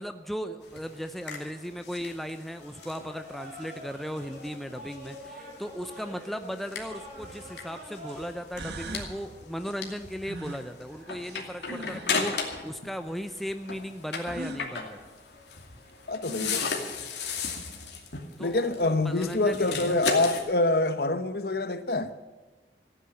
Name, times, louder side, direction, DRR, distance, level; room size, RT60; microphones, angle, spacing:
voice 1, 0.0-15.0 18.4-20.3, equal, ahead, 0.6 m, -37 dB
sound 1, 0.6-12.8 13.0-20.4, left 5 dB, 80° left, 2.5 m, -36 dB
sound 2, 0.6-19.5, equal, 45° right, 7.1 m, -50 dB
sound 3, 8.1-8.2 8.5-9.2 10.2-12.2 14.2-14.7 15.9-16.0 16.3-16.9, right 2 dB, 75° right, 1.4 m, -40 dB
voice 2, 16.1-16.6 18.4-22.1, left 2 dB, 60° left, 0.9 m, -26 dB
14.5 x 9.5 x 8.8 m
head